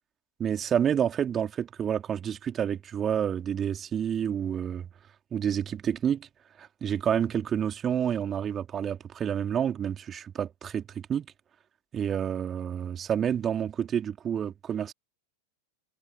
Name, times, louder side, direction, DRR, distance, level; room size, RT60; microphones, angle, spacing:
voice 1, 0.4-4.9 5.3-6.3 6.6-11.3 11.9-14.9, right 8 dB, 25° right, 3.3 m, -29 dB
figure-of-eight pair, 90°, 0 cm